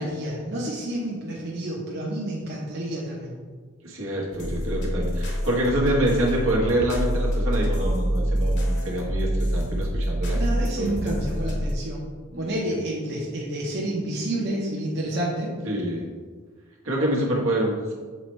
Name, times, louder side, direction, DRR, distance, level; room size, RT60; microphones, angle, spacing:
voice 1, 0.0-3.4 10.3-12.1 12.4-15.5, right 1 dB, 55° right, -4 dB, 0.9 m, -29 dB
voice 2, 3.8-10.5 10.8-11.1 12.3-12.5 15.6-16.1 16.8-17.9, right 1 dB, 80° right, -3 dB, 1.3 m, -26 dB
sound 1, 4.3-11.7, equal, 55° left, 1.1 m, -26 dB
6.7 x 4.4 x 3.2 m, 1.5 s
head